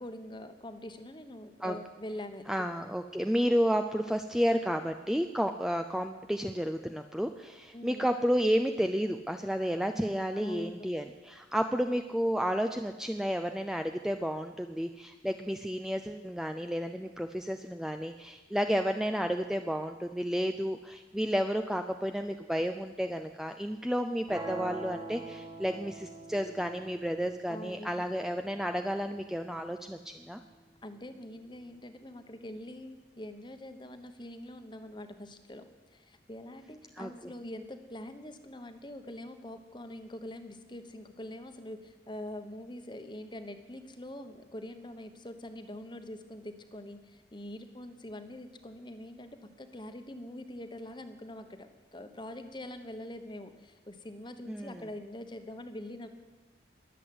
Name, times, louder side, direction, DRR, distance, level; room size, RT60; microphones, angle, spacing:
voice 1, 0.0-2.7 7.7-8.1 10.3-10.9 27.5-28.0 30.8-56.1, left 1 dB, 25° left, 8 dB, 1.1 m, -44 dB
voice 2, 2.5-30.4 37.0-37.1 54.5-54.8, equal, 5° right, 6 dB, 0.4 m, -31 dB
sound 1, 24.3-30.3, right 2 dB, 25° right, 2.3 m, -45 dB
21.5 x 8.2 x 7.8 m, 1.2 s
head